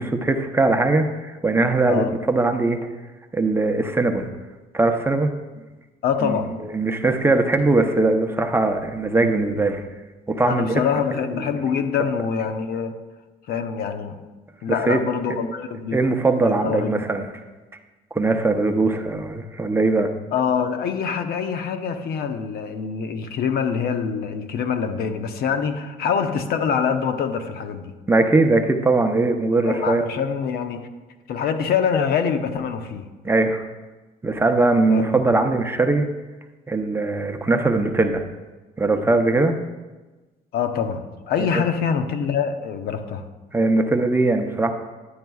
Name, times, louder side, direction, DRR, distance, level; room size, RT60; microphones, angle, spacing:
voice 1, 0.0-2.8 3.3-4.3 4.7-5.3 6.2-9.8 10.3-10.8 14.7-15.0 15.9-17.3 18.1-20.1 28.1-30.0 33.2-33.7 34.2-36.1 36.7-38.2 38.8-39.6 41.5-41.6 43.5-44.7, right 2 dB, 15° right, 5 dB, 0.6 m, -20 dB
voice 2, 6.0-6.5 10.5-12.9 13.5-14.2 14.6-16.1 16.4-17.0 20.3-27.9 29.7-30.9 31.3-33.1 34.9-35.2 40.5-43.2, left 7 dB, 65° left, 8 dB, 0.7 m, -25 dB
10.0 x 9.4 x 2.3 m, 1.2 s
cardioid pair, 110°, 17 cm